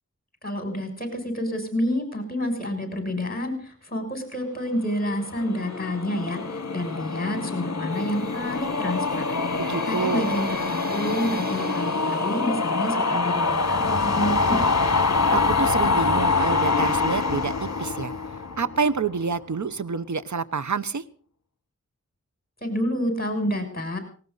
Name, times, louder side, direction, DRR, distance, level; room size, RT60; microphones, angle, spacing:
voice 1, 0.4-9.4 9.9-14.6 22.6-24.0, equal, 30° left, 6 dB, 6.9 m, -29 dB
sound 1, 4.9-19.2, left 4 dB, 60° left, 1.2 m, -25 dB
sound 2, 7.9-13.0, equal, 30° right, 4.3 m, -41 dB
voice 2, 9.6-10.2 15.3-18.1 18.6-21.0, right 5 dB, 70° right, 14 dB, 0.9 m, -27 dB
19.0 x 18.5 x 4.0 m, 0.44 s
wide cardioid pair, 45°, 30 cm